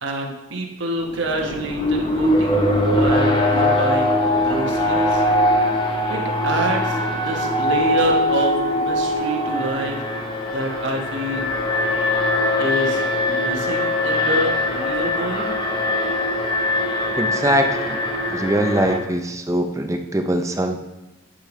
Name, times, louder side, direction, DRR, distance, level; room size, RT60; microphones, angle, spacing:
voice 1, 0.0-5.2 6.1-10.0 10.5-11.5 12.6-15.6, right 1 dB, 55° right, 1 dB, 1.2 m, -27 dB
Alarm, 1.1-19.0, left 1 dB, 20° left, 0.8 m, -21 dB
voice 2, 17.2-18.0 18.3-20.8, right 1 dB, 15° right, 5 dB, 0.5 m, -22 dB
10.0 x 5.2 x 3.1 m, 0.99 s
head